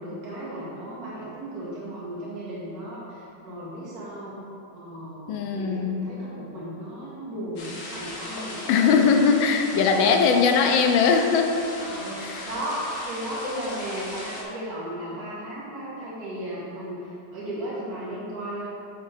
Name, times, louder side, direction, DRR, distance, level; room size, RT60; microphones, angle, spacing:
voice 1, 0.0-4.3 4.7-9.1 9.9-10.1 11.8-18.7, right 1 dB, 45° right, -8 dB, 2.2 m, -35 dB
voice 2, 5.3-6.1 8.7-11.7 12.2-12.5, left 5 dB, 75° left, 4 dB, 1.4 m, -20 dB
sound 1, 7.6-14.4, left 1 dB, 50° left, 1.0 m, -38 dB
10.5 x 3.7 x 4.1 m, 2.8 s
omnidirectional pair, 2.3 m